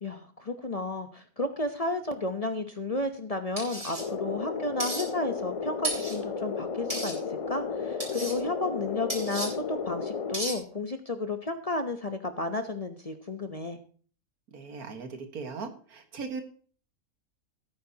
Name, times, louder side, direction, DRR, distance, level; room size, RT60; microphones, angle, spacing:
voice 1, 0.0-13.8, left 2 dB, 30° left, 7 dB, 0.8 m, -32 dB
sound 1, 3.6-4.0 4.8-5.0 5.8-6.2 6.9-7.1 8.0-8.3 9.1-9.5 10.3-10.6, right 1 dB, 30° right, 3.8 m, -33 dB
sound 2, 4.0-10.3, left 5 dB, 55° left, 0.4 m, -34 dB
voice 2, 14.5-16.4, right 4 dB, 85° right, 6 dB, 2.0 m, -38 dB
16.5 x 9.4 x 2.9 m, 0.43 s
omnidirectional pair, 1.5 m